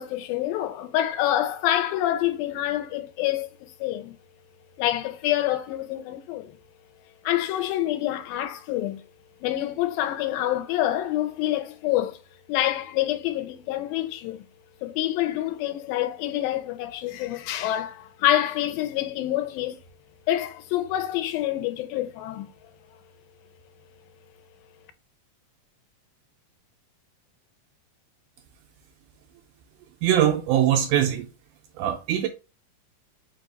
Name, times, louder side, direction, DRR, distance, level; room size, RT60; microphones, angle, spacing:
voice 1, 0.0-4.2 4.8-6.6 7.2-9.0 9.4-12.2 12.5-14.4 14.8-19.8 20.3-22.7, left 13 dB, 90° left, 2.4 m, -27 dB
voice 2, 30.0-31.3 31.8-32.3, right 11 dB, 80° right, 1.9 m, -22 dB
5.3 x 2.4 x 4.0 m
omnidirectional pair, 4.0 m